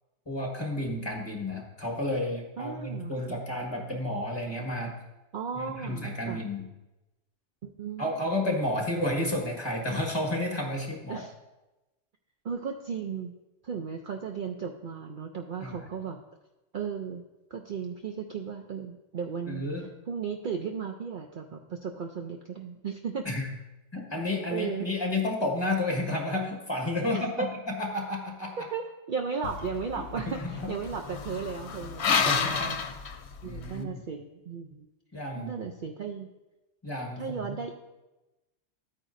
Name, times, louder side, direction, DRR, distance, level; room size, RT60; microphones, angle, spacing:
voice 1, 0.3-5.0 5.5-6.7 8.0-11.2 15.6-15.9 19.5-19.9 23.2-23.5 23.9-28.6 30.1-30.5 32.0-32.7 33.4-33.9 35.1-35.5 36.8-37.6, left 1 dB, 20° left, 0 dB, 1.6 m, -31 dB
voice 2, 2.6-3.4 5.3-6.4 7.6-8.1 8.5-8.6 11.1-11.3 12.4-13.3 13.6-16.2 16.7-17.2 17.5-23.3 24.5-24.9 27.1-27.5 28.6-32.8 33.4-34.9 35.3-36.3 37.2-37.7, right 6 dB, 55° right, 3 dB, 0.6 m, -35 dB
sound 1, 29.4-33.8, left 6 dB, 65° left, 1.0 m, -31 dB
12.5 x 9.0 x 2.6 m, 1.0 s
omnidirectional pair, 1.2 m